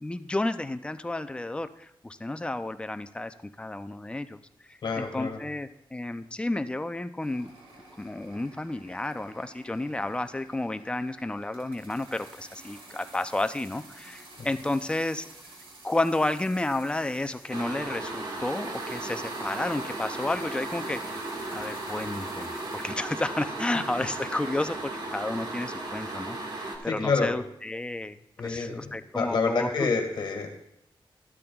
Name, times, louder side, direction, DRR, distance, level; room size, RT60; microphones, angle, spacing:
voice 1, 0.0-4.4 4.7-7.5 8.0-15.3 15.8-21.0 21.5-29.9, left 2 dB, 10° left, 10 dB, 0.4 m, -31 dB
voice 2, 4.8-5.4 26.9-27.4 28.4-30.5, left 4 dB, 60° left, 3 dB, 1.7 m, -28 dB
sound 1, 7.2-24.2, right 2 dB, 90° right, 2.9 m, -51 dB
sound 2, 17.5-26.8, right 2 dB, 50° right, 1.7 m, -35 dB
13.5 x 12.5 x 2.3 m, 0.78 s
wide cardioid pair, 160°, 9 cm